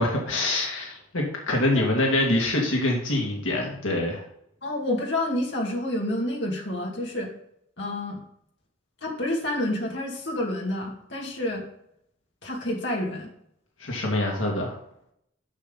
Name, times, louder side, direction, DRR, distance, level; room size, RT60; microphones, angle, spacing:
voice 1, 0.0-4.2 13.8-14.8, left 1 dB, 85° left, -1 dB, 2.1 m, -25 dB
voice 2, 4.6-7.3 7.8-8.2 9.0-11.6 12.4-13.3, left 1 dB, 65° left, -1 dB, 2.4 m, -29 dB
11.0 x 6.8 x 4.0 m, 0.72 s
head